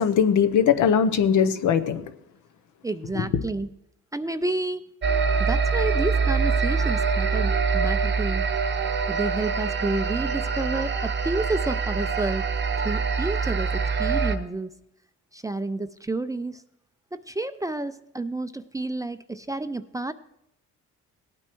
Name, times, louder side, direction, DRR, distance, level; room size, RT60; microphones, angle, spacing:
voice 1, 0.0-2.1 3.2-3.3, left 7 dB, 75° left, 0.8 m, -20 dB
voice 2, 2.8-3.7 4.1-4.8 5.4-8.4 9.1-12.5 12.8-14.7 15.3-16.6 17.1-20.1, right 2 dB, 10° right, 0.4 m, -30 dB
sound 1, 5.0-14.4, right 5 dB, 35° right, 0.8 m, -24 dB
18.0 x 8.9 x 3.0 m
cardioid pair, 90°, 30 cm